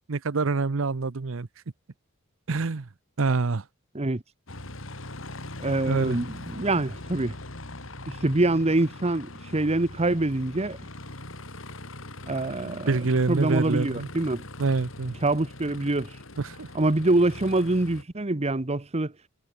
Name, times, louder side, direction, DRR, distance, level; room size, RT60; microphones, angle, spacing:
voice 1, 0.1-1.5 2.5-2.9 3.2-3.6 5.9-6.2 12.9-14.1 14.6-15.1 16.4-16.7, right 3 dB, 70° right, 0.8 m, -26 dB
Aircraft, 4.5-18.0, left 2 dB, 75° left, 4.1 m, -41 dB
voice 2, 5.6-7.4 8.1-10.8 12.3-13.0 13.3-14.4 15.2-16.1 16.7-19.1, right 2 dB, 30° right, 1.0 m, -25 dB
head